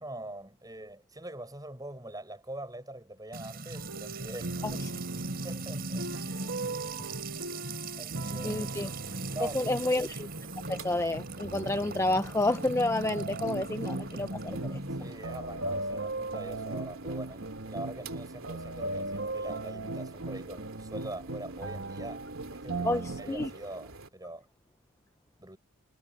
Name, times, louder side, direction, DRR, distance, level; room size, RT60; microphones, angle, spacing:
voice 1, 0.0-4.9 5.4-6.4 8.0-8.7 9.3-10.1 14.8-24.5 25.4-25.6, right 1 dB, 20° right, 6.4 m, -43 dB
Music / Water tap faucet / Trickle dribble, 3.3-15.1, right 2 dB, 45° right, 7.2 m, -39 dB
sound 1, 3.8-12.2 13.0-23.5, right 2 dB, 70° right, 1.4 m, -38 dB
voice 2, 8.4-8.9 9.4-10.2 10.7-14.8 22.8-23.5, left 2 dB, 15° left, 0.6 m, -30 dB
sound 2, 8.5-24.1, right 3 dB, 85° right, 2.8 m, -47 dB
head